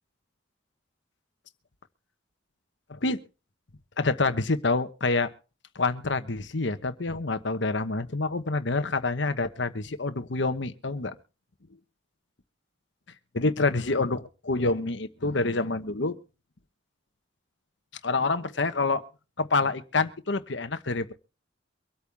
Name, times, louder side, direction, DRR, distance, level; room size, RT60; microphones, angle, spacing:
voice 1, 2.9-3.2 4.0-5.3 5.7-11.2 13.3-16.2 18.0-19.0 19.4-21.1, left 3 dB, 65° left, 11 dB, 1.1 m, -27 dB
24.5 x 8.7 x 3.5 m, 0.34 s
head